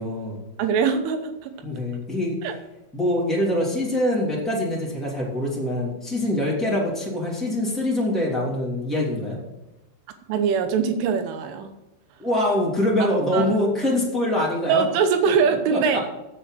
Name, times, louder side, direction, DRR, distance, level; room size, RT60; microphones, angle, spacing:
voice 1, 0.0-0.4 1.6-2.4 2.9-9.4 12.2-14.8 15.7-15.8, left 1 dB, ahead, -5 dB, 1.4 m, -24 dB
voice 2, 0.6-1.5 2.4-2.5 10.3-11.7 13.0-13.6 14.7-16.0, right 6 dB, 80° right, 7 dB, 3.4 m, -22 dB
7.8 x 7.4 x 7.5 m, 0.96 s
omnidirectional pair, 5.7 m